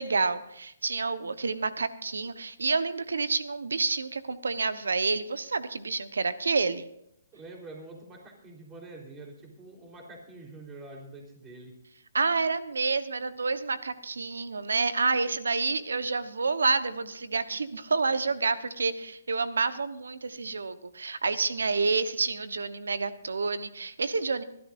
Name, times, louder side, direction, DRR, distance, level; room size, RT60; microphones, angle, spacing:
voice 1, 0.0-6.9 12.1-24.4, right 4 dB, 85° right, 13 dB, 1.1 m, -29 dB
voice 2, 7.3-11.7, right 2 dB, 20° right, 0 dB, 3.9 m, -46 dB
25.0 x 12.5 x 2.6 m, 0.77 s
hypercardioid pair, 140°, 0 cm